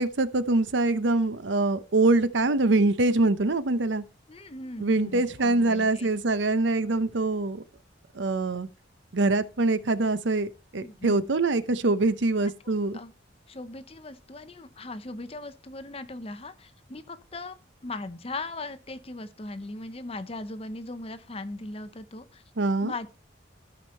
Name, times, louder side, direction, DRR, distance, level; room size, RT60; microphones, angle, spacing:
voice 1, 0.0-4.0 4.8-7.6 8.1-8.7 9.1-13.0 22.6-22.9, right 2 dB, 70° right, 0.7 m, -24 dB
voice 2, 4.3-6.1 10.8-11.2 12.6-13.1 13.5-17.6 17.8-22.4 22.8-23.2, left 2 dB, 30° left, 0.8 m, -39 dB
13.0 x 5.1 x 4.3 m
head